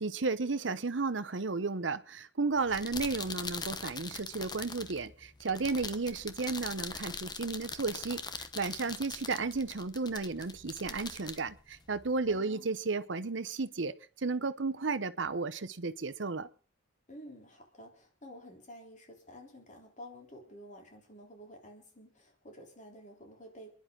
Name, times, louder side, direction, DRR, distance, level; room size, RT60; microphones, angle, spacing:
voice 1, 0.0-16.5, right 4 dB, 90° right, 0.9 m, -33 dB
sound 1, 2.6-12.4, left 4 dB, 25° left, 1.0 m, -42 dB
voice 2, 12.3-12.7 17.1-23.7, equal, 45° left, 3.6 m, -51 dB
29.0 x 11.0 x 3.8 m
head